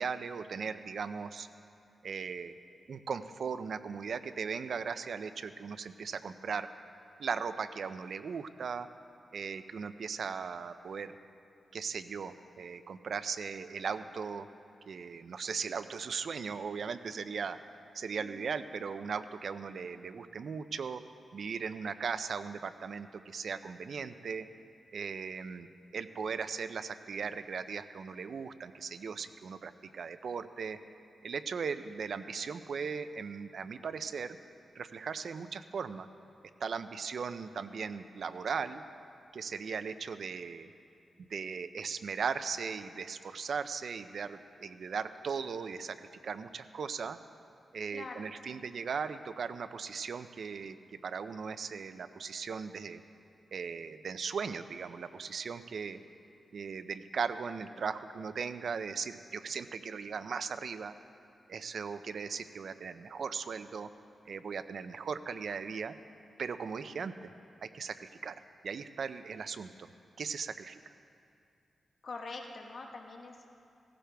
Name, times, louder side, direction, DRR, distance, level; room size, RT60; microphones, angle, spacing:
voice 1, 0.0-1.5 2.0-2.6 2.9-6.7 7.2-8.9 9.3-11.2 11.7-14.5 14.9-17.6 17.9-21.0 21.3-24.5 24.9-25.7 25.9-30.8 31.2-34.4 34.7-36.1 36.6-38.8 39.3-40.7 41.2-47.2 47.7-50.8 51.0-53.0 53.5-56.0 56.5-60.9 61.5-63.9 64.3-65.9 66.4-67.3 67.6-68.3 68.6-69.9 70.2-70.9, right 5 dB, 65° right, 11 dB, 0.5 m, -38 dB
voice 2, 18.2-18.6 47.9-48.2 72.0-73.5, left 3 dB, 50° left, 2 dB, 1.1 m, -44 dB
16.5 x 15.0 x 3.4 m, 2.5 s
wide cardioid pair, 125°, 0 cm